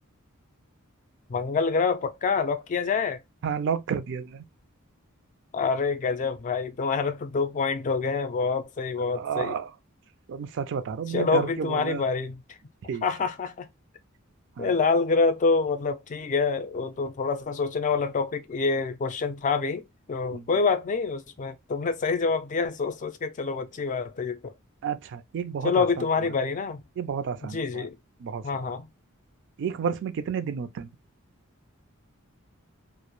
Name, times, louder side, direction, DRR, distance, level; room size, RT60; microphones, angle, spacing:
voice 1, 1.3-3.2 5.5-9.5 11.1-12.4 13.0-13.7 14.6-24.5 25.6-26.8 27.5-27.9 28.4-28.9, left 4 dB, 35° left, 0.3 m, -26 dB
voice 2, 3.4-4.4 9.1-9.7 10.3-12.0 12.9-13.0 14.6-14.7 20.3-20.5 24.8-26.0 27.0-27.9 28.2-28.7 29.6-30.9, right 7 dB, 60° right, 0.3 m, -31 dB
2.2 x 2.0 x 2.9 m
head